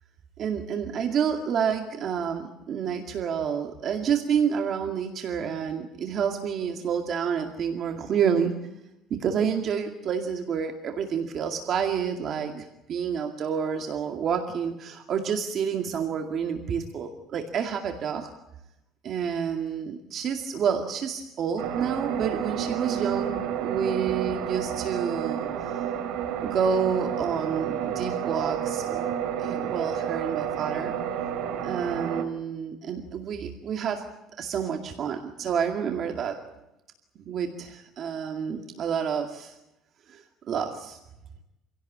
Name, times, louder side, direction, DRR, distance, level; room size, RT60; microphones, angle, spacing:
voice 1, 0.4-8.5 9.1-18.3 19.0-25.8 26.4-29.1 29.4-30.9 31.6-34.0 34.4-36.4 37.3-39.6 40.1-41.0, right 7 dB, 40° right, 4 dB, 2.2 m, -29 dB
sound 1, 21.6-32.2, right 9 dB, 80° right, 3.6 m, -30 dB
27.0 x 17.0 x 8.7 m, 0.91 s
cardioid pair, 165°, 0 cm